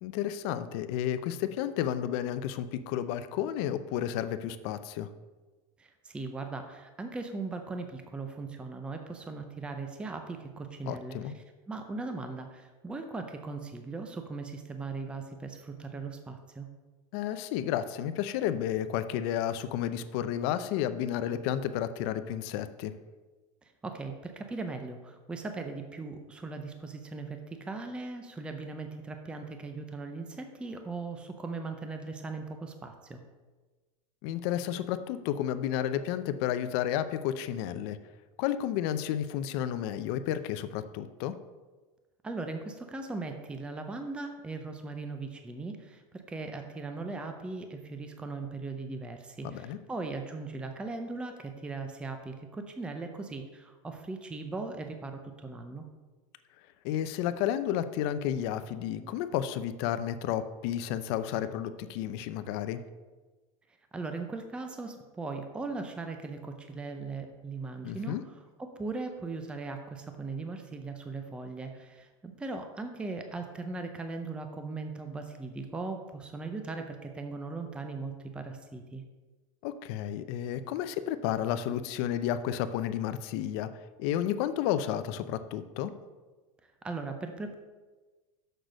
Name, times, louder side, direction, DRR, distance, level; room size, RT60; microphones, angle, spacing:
voice 1, 0.0-5.1 10.9-11.3 17.1-22.9 34.2-38.0 38.4-41.3 49.4-49.8 56.8-62.8 67.8-68.2 79.6-83.7 84.0-85.9, left 10 dB, 50° left, 11 dB, 0.6 m, -32 dB
voice 2, 5.8-16.7 23.6-33.2 42.2-55.8 63.9-79.0 86.8-87.5, right 3 dB, 5° right, 6 dB, 0.5 m, -39 dB
6.6 x 6.1 x 6.3 m, 1.3 s
supercardioid pair, 165°, 16 cm